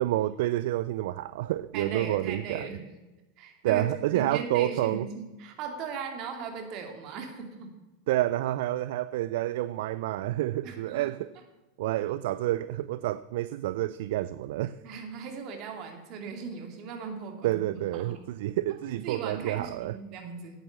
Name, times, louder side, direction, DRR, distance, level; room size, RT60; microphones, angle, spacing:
voice 1, 0.0-2.7 3.6-5.1 8.1-11.3 11.8-14.7 17.4-20.0, right 14 dB, 65° right, 16 dB, 0.3 m, -29 dB
voice 2, 1.7-2.8 3.4-7.7 10.6-11.2 14.8-18.2 19.0-20.6, right 5 dB, 50° right, 4 dB, 2.5 m, -38 dB
9.1 x 8.8 x 7.2 m, 1.1 s
hypercardioid pair, 90°, 0 cm